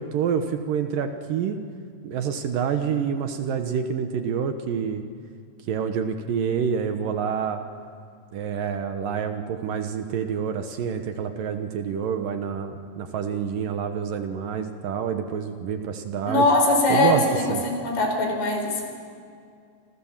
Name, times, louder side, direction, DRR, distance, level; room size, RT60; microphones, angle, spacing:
voice 1, 0.0-1.6 2.0-5.0 5.7-7.6 8.3-16.4 16.9-17.2 17.5-17.6, right 7 dB, 65° right, 7 dB, 2.4 m, -27 dB
voice 2, 16.3-18.8, left 2 dB, 90° left, 3 dB, 6.7 m, -21 dB
28.5 x 26.5 x 7.3 m, 2.2 s
omnidirectional pair, 4.9 m